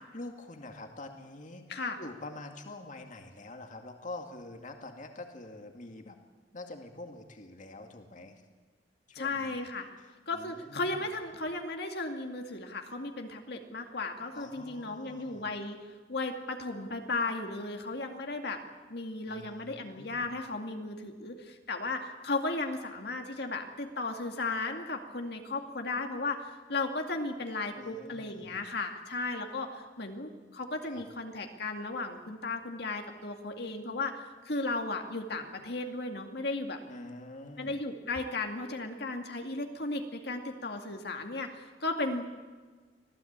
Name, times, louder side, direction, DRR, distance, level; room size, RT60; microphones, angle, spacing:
voice 1, 0.1-6.2 6.5-8.4 9.1-9.6 10.3-10.9 14.3-15.5 19.2-20.3 27.8-28.6 30.8-31.0 36.9-37.8, left 2 dB, 45° left, 4 dB, 2.3 m, -46 dB
voice 2, 9.1-9.9 10.3-15.8 16.1-18.6 18.9-36.8 37.6-42.4, left 3 dB, 65° left, 4 dB, 2.2 m, -35 dB
25.5 x 17.0 x 8.8 m, 1.4 s
head